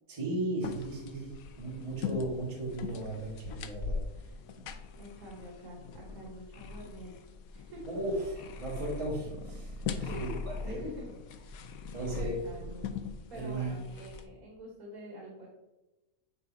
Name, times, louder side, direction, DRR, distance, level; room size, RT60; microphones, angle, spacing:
voice 1, 0.1-4.3 7.9-10.3 10.7-10.8 11.9-12.3 13.3-13.7, right 2 dB, 25° right, -5 dB, 1.7 m, -36 dB
sound 1, 0.6-14.3, left 5 dB, 80° left, 1.0 m, -41 dB
voice 2, 5.0-8.0 8.3-8.4 10.1-11.7 12.1-13.0 13.3-15.5, equal, 80° right, -2 dB, 1.8 m, -47 dB
9.3 x 3.9 x 2.7 m, 1.0 s
omnidirectional pair, 1.5 m